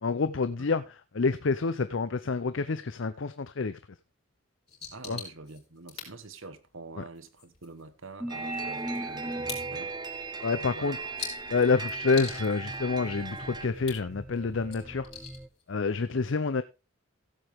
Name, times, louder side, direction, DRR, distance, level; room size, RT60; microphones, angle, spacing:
voice 1, 0.0-3.8 5.1-5.2 7.0-7.1 10.4-11.0 11.5-15.1 15.7-16.6, left 4 dB, 65° left, 0.6 m, -28 dB
sound 1, 4.7-15.8, left 6 dB, 30° left, 4.3 m, -46 dB
voice 2, 4.9-9.9 10.6-11.0, right 3 dB, 70° right, 1.3 m, -46 dB
sound 2, 8.2-9.9 10.6-15.5, right 1 dB, 5° right, 0.5 m, -42 dB
sound 3, 8.3-13.7, right 4 dB, 20° right, 1.0 m, -37 dB
15.5 x 8.0 x 3.5 m
head